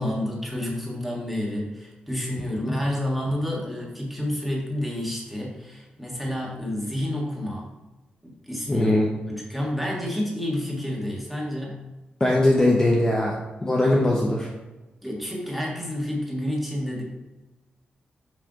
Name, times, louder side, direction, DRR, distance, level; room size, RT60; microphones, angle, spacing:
voice 1, 0.0-7.7 8.2-8.9 9.3-11.9 15.0-17.0, left 1 dB, ahead, -3 dB, 1.6 m, -29 dB
voice 2, 8.7-9.1 12.2-13.3 13.6-14.5, left 1 dB, 20° left, -2 dB, 0.8 m, -20 dB
6.2 x 3.3 x 4.9 m, 1.1 s
wide cardioid pair, 115°, 3 cm